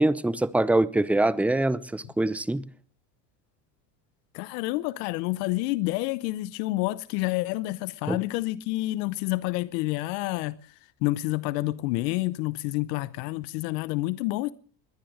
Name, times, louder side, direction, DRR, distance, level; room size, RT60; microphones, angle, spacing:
voice 1, 0.0-2.6 8.1-8.2, right 2 dB, 5° right, 0.7 m, -24 dB
voice 2, 4.3-10.7 11.0-14.5, left 19 dB, 75° left, 0.9 m, -28 dB
21.0 x 10.5 x 6.4 m
supercardioid pair, 100°, 49 cm